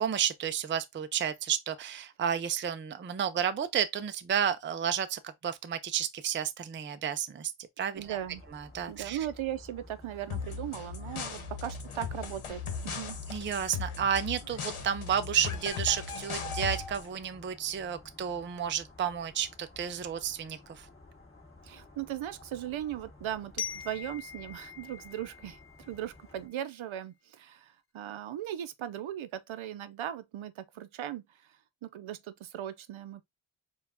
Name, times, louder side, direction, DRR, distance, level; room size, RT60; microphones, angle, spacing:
voice 1, 0.0-7.5 7.8-8.2 8.5-9.2 13.3-20.9, right 8 dB, 25° right, 0.4 m, -31 dB
sound 1, 7.9-26.5, left 2 dB, 25° left, 2.0 m, -54 dB
voice 2, 7.9-8.4 8.9-13.2 21.6-33.2, right 11 dB, 70° right, 0.6 m, -38 dB
sound 2, 10.3-17.1, left 5 dB, 75° left, 1.1 m, -38 dB
Glockenspiel, 23.6-26.4, left 8 dB, 50° left, 0.8 m, -42 dB
4.6 x 2.4 x 3.4 m
wide cardioid pair, 120°, 49 cm